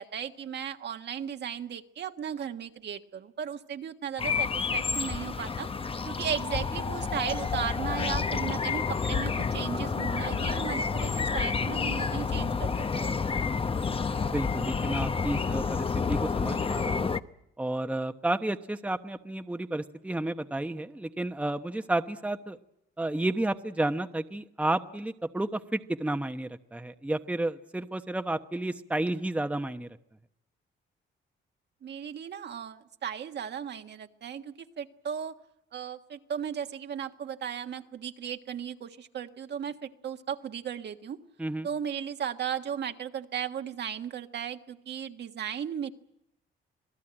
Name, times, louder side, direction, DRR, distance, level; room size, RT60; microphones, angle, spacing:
voice 1, 0.0-5.7 6.1-13.1 31.8-35.3 35.7-41.2 41.6-45.9, right 8 dB, 60° right, 6 dB, 1.5 m, -36 dB
sound 1, 4.2-17.2, left 5 dB, 30° left, 0.9 m, -29 dB
voice 2, 14.2-17.1 17.6-22.6 23.0-29.9 41.4-41.7, right 1 dB, 5° right, 7 dB, 1.0 m, -31 dB
27.0 x 18.0 x 8.9 m, 0.80 s
cardioid pair, 90°, 20 cm